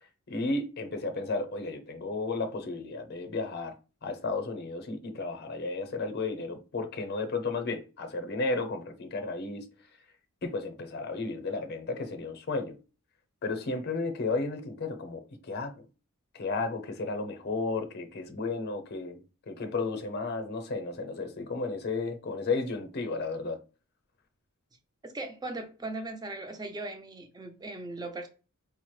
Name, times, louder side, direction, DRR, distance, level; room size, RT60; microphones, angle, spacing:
voice 1, 0.3-3.8 4.0-9.7 10.4-12.8 13.4-15.7 16.3-23.6, left 3 dB, 50° left, 0.6 m, -33 dB
voice 2, 25.0-28.3, right 2 dB, 20° right, 0.5 m, -38 dB
4.7 x 2.0 x 3.1 m
head